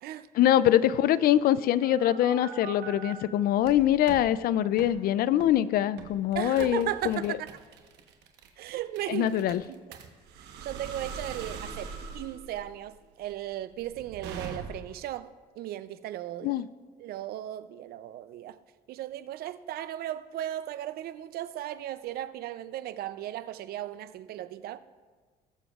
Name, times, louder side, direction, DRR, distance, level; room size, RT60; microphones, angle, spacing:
voice 1, 0.3-7.4 9.1-9.6 16.4-16.7, left 12 dB, 65° left, 0.4 m, -24 dB
sound 1, 1.4-3.1 3.6-4.3 4.8-4.9 5.4-5.6 6.0-15.0, right 6 dB, 85° right, 1.1 m, -42 dB
voice 2, 6.3-7.5 8.6-9.4 9.7-10.0 10.4-15.3 15.6-16.5 17.0-18.6 18.9-24.8, right 13 dB, 65° right, 0.5 m, -36 dB
19.5 x 7.0 x 2.4 m
cardioid pair, 110°, 17 cm